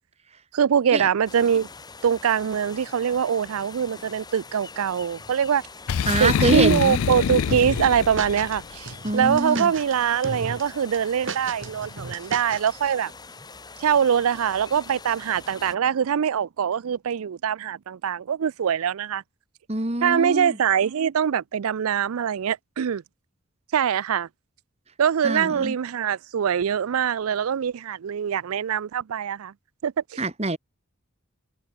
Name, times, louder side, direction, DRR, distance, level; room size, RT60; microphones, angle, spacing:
voice 1, 0.5-1.7 2.0-5.6 6.2-13.1 13.8-19.2 20.0-23.0 23.7-24.3 25.0-29.5 29.8-29.9, right 8 dB, 80° right, 0.4 m, -23 dB
sound 1, 1.3-15.8, left 4 dB, 20° left, 1.4 m, -44 dB
Boom, 5.9-8.6, left 7 dB, 80° left, 0.4 m, -25 dB
voice 2, 6.1-7.0 9.0-9.7 19.7-20.6 25.2-25.7 30.2-30.6, right 2 dB, 30° right, 1.6 m, -25 dB
sound 2, 7.5-8.6 8.9-9.9 10.2-10.6 10.9-12.7, right 3 dB, 60° right, 3.0 m, -34 dB
head